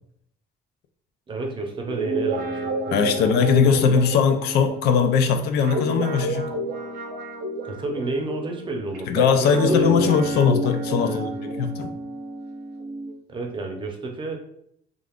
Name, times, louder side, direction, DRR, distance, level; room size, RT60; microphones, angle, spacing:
voice 1, 1.3-3.4 7.6-10.4 11.0-11.4 13.3-14.4, right 3 dB, 30° right, 2 dB, 0.6 m, -31 dB
Guitar, 1.8-9.0 9.4-13.1, right 1 dB, 70° right, 0.7 m, -29 dB
voice 2, 2.9-6.5 9.1-11.9, left 6 dB, 75° left, 7 dB, 0.4 m, -20 dB
2.4 x 2.3 x 3.4 m, 0.69 s
cardioid pair, 110°, 17 cm